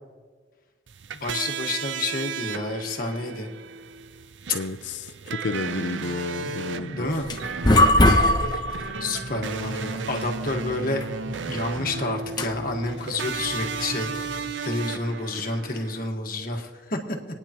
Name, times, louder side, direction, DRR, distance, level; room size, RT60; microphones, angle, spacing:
sound 1, 0.9-16.1, right 5 dB, 80° right, 0.5 m, -34 dB
voice 1, 1.2-3.5 6.9-7.3 9.0-11.0 11.5-17.2, left 2 dB, 50° left, 2 dB, 1.5 m, -29 dB
voice 2, 4.5-7.1, left 3 dB, 75° left, 12 dB, 0.5 m, -31 dB
sound 2, 7.0-14.5, left 1 dB, 25° left, 0.8 m, -24 dB
28.5 x 9.9 x 3.0 m, 1.5 s
head